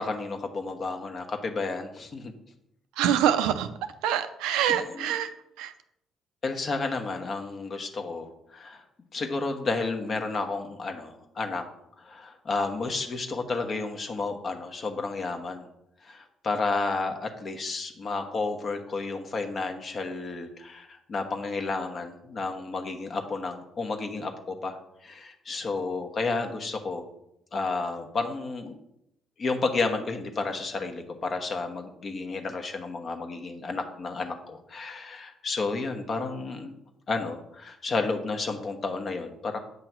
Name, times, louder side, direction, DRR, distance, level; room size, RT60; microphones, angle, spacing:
voice 1, 0.0-2.3 5.0-5.1 6.4-8.8 9.1-11.6 12.0-15.7 16.0-27.0 27.5-28.8 29.4-36.7 37.1-39.6, left 3 dB, 45° left, 5 dB, 1.1 m, -31 dB
voice 2, 3.0-3.7 4.0-5.3 5.6-5.7, right 10 dB, 90° right, 9 dB, 0.5 m, -25 dB
8.0 x 3.0 x 6.0 m, 0.80 s
supercardioid pair, 75°, 0 cm